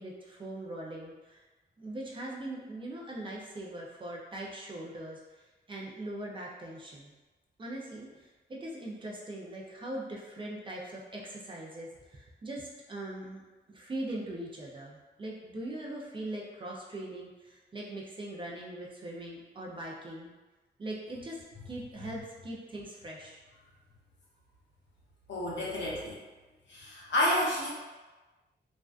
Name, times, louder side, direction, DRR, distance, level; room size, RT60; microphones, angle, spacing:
voice 1, 0.0-1.4 1.8-7.1 7.6-13.4 13.7-20.3 20.8-23.4, right 1 dB, 25° right, -3 dB, 0.4 m, -41 dB
voice 2, 25.3-26.2 26.7-27.7, left 1 dB, 75° left, -5 dB, 0.7 m, -30 dB
2.4 x 2.2 x 2.3 m, 1.2 s
wide cardioid pair, 150°, 19 cm